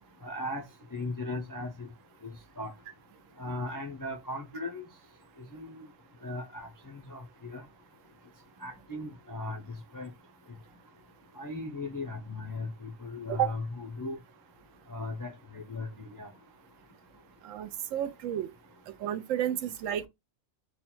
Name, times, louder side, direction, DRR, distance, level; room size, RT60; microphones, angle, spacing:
voice 1, 0.2-0.6 0.9-1.9 2.2-2.3 2.6-2.7 3.4-4.8 5.5-5.8 6.2-7.6 8.6-9.6 9.9-10.1 11.4-14.2 14.9-16.3, left 2 dB, 30° left, 0.3 m, -37 dB
voice 2, 17.4-18.5 19.0-20.1, right 11 dB, 85° right, 1.0 m, -31 dB
3.6 x 2.3 x 4.3 m
omnidirectional pair, 1.3 m